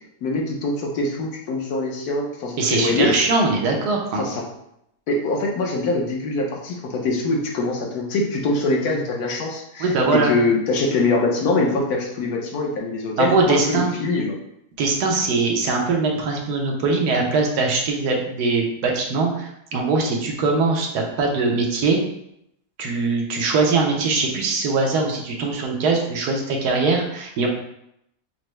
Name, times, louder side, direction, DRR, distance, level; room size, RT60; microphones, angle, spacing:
voice 1, 0.2-3.1 4.2-4.5 5.1-14.4, left 2 dB, 75° left, 0 dB, 1.3 m, -23 dB
voice 2, 2.6-4.2 9.8-10.3 13.2-13.9 14.8-22.0 22.8-27.5, right 3 dB, 85° right, 0 dB, 1.3 m, -21 dB
5.6 x 2.0 x 3.1 m, 0.78 s
omnidirectional pair, 1.7 m